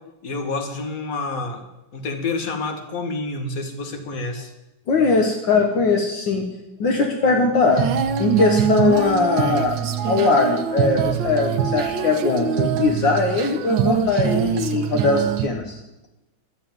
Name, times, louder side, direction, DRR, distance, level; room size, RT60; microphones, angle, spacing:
voice 1, 0.2-1.6 1.9-4.5, left 3 dB, 45° left, 5 dB, 1.9 m, -28 dB
voice 2, 4.9-6.5 6.8-7.8 8.2-9.8 10.1-15.8, left 3 dB, 70° left, 2 dB, 1.9 m, -20 dB
Female singing, 7.7-15.5, right 8 dB, 75° right, 1.5 m, -23 dB
13.0 x 7.0 x 9.2 m, 0.96 s
omnidirectional pair, 2.2 m